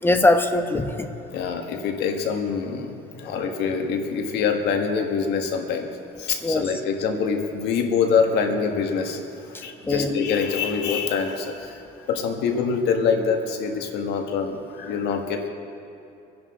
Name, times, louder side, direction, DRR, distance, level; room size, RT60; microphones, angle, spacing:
voice 1, 0.0-1.1 6.4-6.6 9.5-10.1, left 2 dB, 15° left, 7 dB, 1.1 m, -21 dB
voice 2, 1.3-5.9 6.2-9.2 9.5-11.8 12.1-15.5, left 6 dB, 80° left, 3 dB, 1.7 m, -25 dB
25.5 x 10.5 x 3.8 m, 2.8 s
cardioid pair, 110°, 17 cm